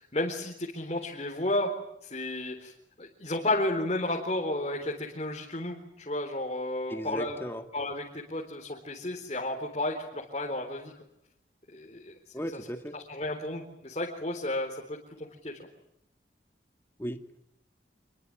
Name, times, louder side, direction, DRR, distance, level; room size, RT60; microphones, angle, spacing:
voice 1, 0.0-1.7 2.0-2.7 3.0-7.4 7.7-10.9 11.7-12.1 12.9-15.0 15.4-15.5, left 1 dB, 35° left, 0 dB, 4.0 m, -32 dB
voice 2, 6.9-7.6 12.3-12.9 17.0-17.2, equal, 15° left, 6 dB, 2.0 m, -36 dB
27.5 x 22.5 x 9.0 m, 0.78 s
head